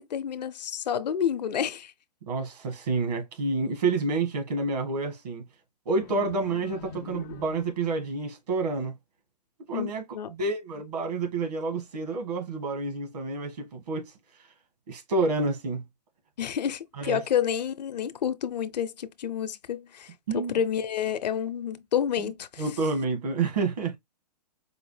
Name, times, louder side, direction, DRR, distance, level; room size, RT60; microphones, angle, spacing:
voice 1, 0.0-1.9 9.7-10.3 16.4-22.6, left 8 dB, 75° left, 0.6 m, -29 dB
voice 2, 2.2-5.4 5.8-8.9 9.7-14.1 14.9-15.8 17.0-17.2 20.3-20.5 22.2-22.3 22.6-24.0, right 3 dB, 70° right, 1.7 m, -29 dB
sound 1, 6.0-8.1, left 9 dB, 25° left, 0.4 m, -44 dB
4.7 x 2.1 x 3.2 m
hypercardioid pair, 135°, 21 cm